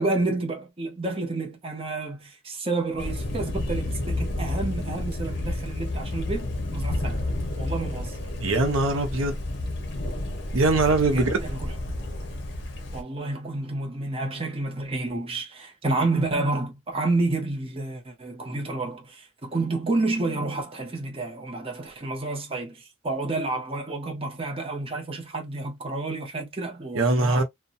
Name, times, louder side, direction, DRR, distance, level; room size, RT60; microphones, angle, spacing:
voice 1, 0.0-7.2 7.6-8.2 11.1-11.7 12.9-27.4, right 2 dB, 25° right, 0.7 m, -30 dB
Thunder, 3.0-13.0, left 1 dB, 55° left, 0.7 m, -30 dB
voice 2, 8.4-9.4 10.5-11.4 27.0-27.4, right 2 dB, 75° right, 0.7 m, -22 dB
2.6 x 2.2 x 2.5 m
head